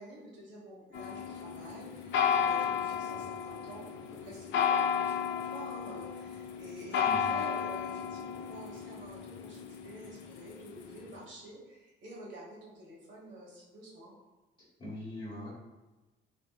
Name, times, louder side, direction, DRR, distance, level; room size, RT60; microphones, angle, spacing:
voice 1, 0.0-3.9 4.2-14.1, right 1 dB, 70° right, -5 dB, 1.4 m, -48 dB
sound 1, 0.9-11.1, left 7 dB, 70° left, 0.4 m, -33 dB
voice 2, 7.0-7.3 14.8-15.5, left 1 dB, 25° left, -11 dB, 1.4 m, -41 dB
3.3 x 2.8 x 2.3 m, 1.1 s
cardioid pair, 90°, 20 cm